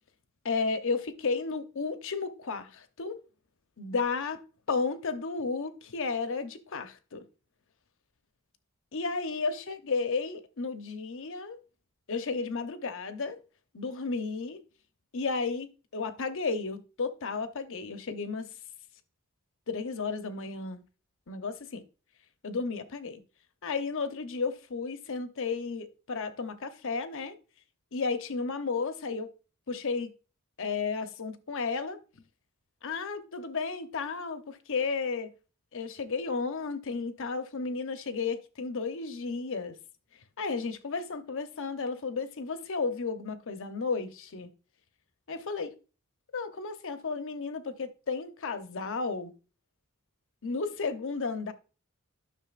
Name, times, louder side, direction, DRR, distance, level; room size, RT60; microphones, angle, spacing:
voice 1, 0.4-3.2 3.8-4.4 4.7-7.2 8.9-11.6 12.1-13.4 13.7-14.6 15.1-18.5 19.7-20.8 21.3-21.8 22.4-23.2 23.6-27.3 27.9-29.3 29.7-30.1 30.6-32.0 32.8-35.3 35.7-39.8 40.4-44.5 45.3-45.7 46.3-49.3 50.4-51.5, left 4 dB, 65° left, 0.9 m, -33 dB
11.0 x 6.3 x 2.5 m
head